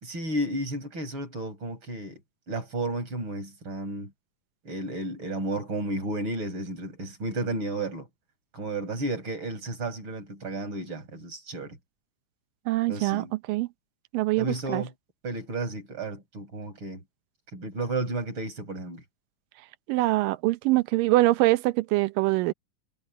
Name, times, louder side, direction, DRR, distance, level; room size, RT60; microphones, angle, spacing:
voice 1, 0.0-2.2 2.5-4.1 4.6-8.1 8.5-11.8 12.9-13.3 14.4-14.9 15.2-17.0 17.5-19.0, right 2 dB, 35° right, 5.8 m, -32 dB
voice 2, 12.7-13.7 14.1-14.8 19.9-22.5, right 18 dB, 85° right, 2.4 m, -24 dB
omnidirectional pair, 3.8 m